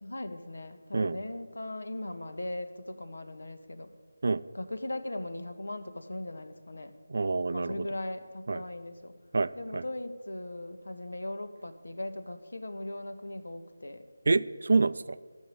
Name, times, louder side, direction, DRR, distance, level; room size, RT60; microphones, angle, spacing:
voice 1, 0.0-3.9 4.5-6.9 7.5-9.1 9.6-14.0, left 1 dB, 75° left, 10 dB, 1.4 m, -39 dB
voice 2, 7.1-7.9 8.5-8.6 9.3-9.8 14.3-15.2, right 3 dB, 55° right, 15 dB, 0.5 m, -27 dB
14.5 x 6.8 x 9.4 m, 1.5 s
figure-of-eight pair, 160°, 0 cm